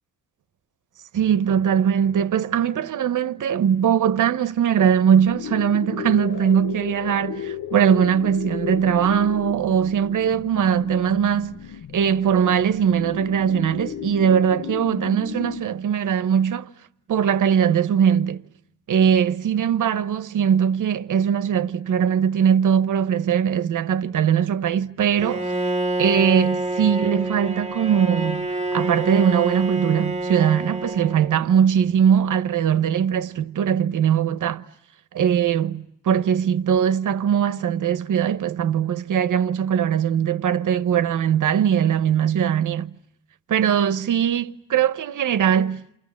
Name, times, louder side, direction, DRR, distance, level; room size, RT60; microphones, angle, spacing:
voice 1, 1.1-11.6 11.9-16.7 17.1-18.4 18.9-25.5 26.0-34.6 35.1-42.9 43.5-46.0, right 8 dB, 55° right, 1.0 m, -20 dB
sound 1, 5.2-15.6, left 9 dB, 60° left, 1.1 m, -34 dB
Bowed string instrument, 25.2-31.5, right 1 dB, 20° right, 1.2 m, -27 dB
29.0 x 28.0 x 7.4 m
cardioid pair, 70°, 37 cm